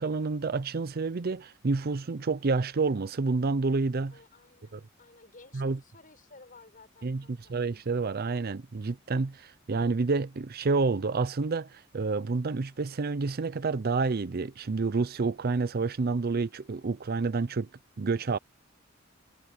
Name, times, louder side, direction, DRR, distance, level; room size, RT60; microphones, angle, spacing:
voice 1, 0.0-4.1 4.7-4.8 5.5-5.8 7.0-17.7 18.0-18.4, right 4 dB, 50° right, 0.6 m, -29 dB
voice 2, 4.1-7.6, left 3 dB, 45° left, 7.3 m, -55 dB
head